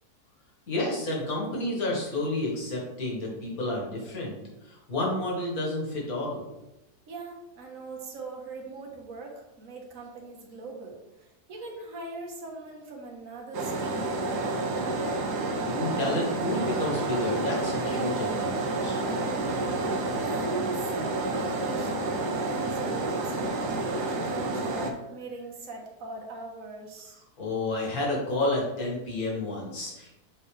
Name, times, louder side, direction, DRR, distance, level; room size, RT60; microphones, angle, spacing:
voice 1, 0.7-6.5 15.6-19.0 27.4-30.1, left 2 dB, 60° left, -2 dB, 2.2 m, -30 dB
voice 2, 7.1-15.2 19.5-27.2, right 3 dB, 55° right, 1 dB, 1.5 m, -41 dB
sound 1, 13.5-24.9, right 2 dB, 90° right, 1.5 m, -29 dB
7.0 x 4.5 x 3.3 m, 0.93 s
omnidirectional pair, 1.7 m